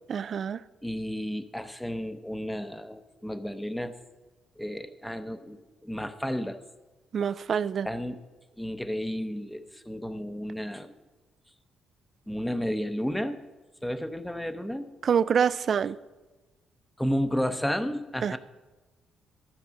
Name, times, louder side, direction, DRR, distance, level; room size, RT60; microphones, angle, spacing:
voice 1, 0.1-0.6 7.1-7.9 15.0-16.0 18.2-18.4, right 7 dB, 50° right, 0.3 m, -26 dB
voice 2, 0.8-4.0 4.6-6.6 7.8-8.2 8.6-10.9 12.3-13.5 13.8-14.9 17.0-18.4, equal, 5° left, 0.7 m, -32 dB
13.5 x 4.6 x 6.3 m
cardioid pair, 90°, 0 cm